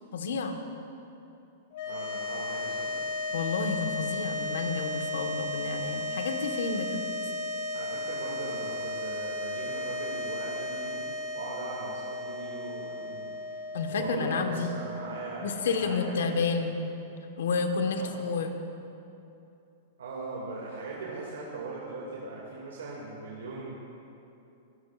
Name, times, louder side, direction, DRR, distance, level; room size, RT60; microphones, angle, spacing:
voice 1, 0.1-0.6 3.3-7.1 13.7-14.7 15.4-16.8 17.4-18.6, left 4 dB, 80° left, 5 dB, 1.5 m, -30 dB
sound 1, 1.7-16.1, left 2 dB, 60° left, 2.3 m, -35 dB
voice 2, 1.8-2.9 7.7-11.0 11.3-13.6 13.9-16.0 16.4-16.5 17.9-18.2 20.0-23.8, right 3 dB, 85° right, -4 dB, 2.3 m, -39 dB
24.5 x 13.5 x 2.5 m, 2.8 s
hypercardioid pair, 120°, 0 cm